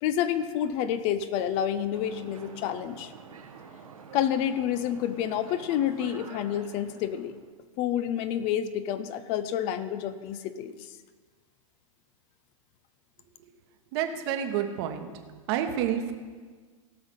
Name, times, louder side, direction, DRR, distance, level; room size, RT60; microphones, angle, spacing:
voice 1, 0.0-3.1 4.1-7.4 7.8-10.8, left 10 dB, 40° left, 12 dB, 0.7 m, -29 dB
sound 1, 1.9-7.5, right 6 dB, 75° right, 1.2 m, -48 dB
voice 2, 13.9-15.1 15.5-16.1, right 9 dB, 45° right, 6 dB, 1.3 m, -29 dB
17.0 x 6.3 x 5.4 m, 1.5 s
hypercardioid pair, 105°, 18 cm